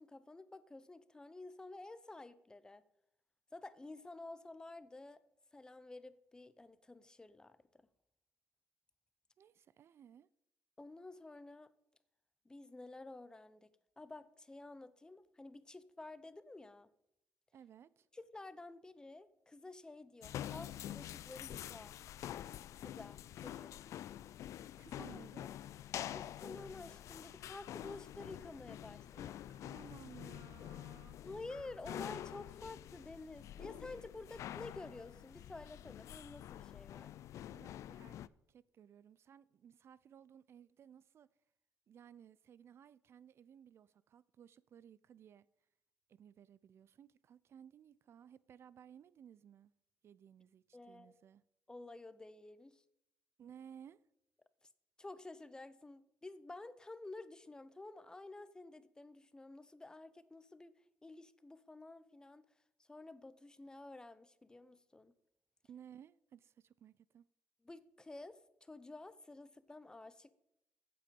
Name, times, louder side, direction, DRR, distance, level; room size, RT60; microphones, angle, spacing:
voice 1, 0.0-2.8 3.5-5.2 5.5-7.6 10.8-11.7 12.5-13.7 14.0-16.9 18.1-21.9 22.8-23.7 24.9-25.2 26.1-29.3 31.2-37.2 50.7-51.2 51.7-52.8 55.0-62.4 62.9-65.1 67.6-70.3, left 2 dB, 15° left, 0.7 m, -51 dB
voice 2, 9.4-10.3 17.5-18.1 24.8-25.5 29.1-31.2 37.5-38.2 38.5-41.3 41.9-45.5 46.1-49.7 50.0-51.4 53.4-54.0 65.7-67.3, right 9 dB, 50° right, 0.4 m, -58 dB
sound 1, 20.2-38.3, left 12 dB, 70° left, 0.4 m, -47 dB
15.0 x 7.8 x 5.3 m
cardioid pair, 120°, 5 cm